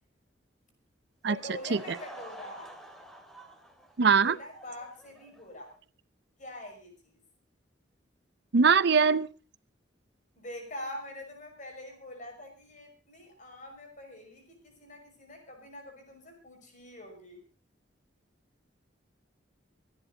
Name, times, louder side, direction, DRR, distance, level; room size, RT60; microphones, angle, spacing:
Laughter / Crowd, 1.2-5.8, right 1 dB, ahead, 2.5 m, -49 dB
voice 1, 1.3-2.7 4.2-5.7 6.4-7.1 10.4-17.4, left 1 dB, 45° left, 4 dB, 5.8 m, -44 dB
voice 2, 4.0-4.4 8.5-9.3, right 5 dB, 60° right, 17 dB, 0.6 m, -21 dB
24.5 x 10.5 x 3.9 m, 0.32 s
head